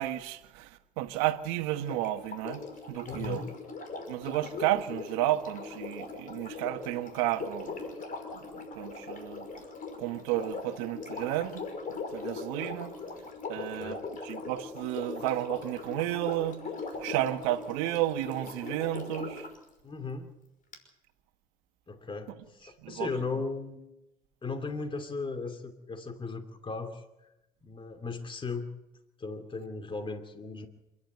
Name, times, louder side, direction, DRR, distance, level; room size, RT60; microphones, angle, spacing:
voice 1, 0.0-2.6 2.9-3.4 4.1-7.8 8.7-9.5 10.0-13.0 13.5-14.0 14.2-16.6 17.0-19.5 22.8-23.1, right 14 dB, 85° right, 1.5 m, -32 dB
Sink (filling or washing), 1.7-19.6 20.7-20.8, left 4 dB, 45° left, 5.7 m, -40 dB
voice 2, 3.0-3.5 13.6-14.0 19.8-20.3 21.9-23.8 24.4-27.3 27.6-28.7 29.2-30.7, left 4 dB, 25° left, 2.7 m, -37 dB
27.5 x 11.5 x 9.4 m
supercardioid pair, 75°, 19 cm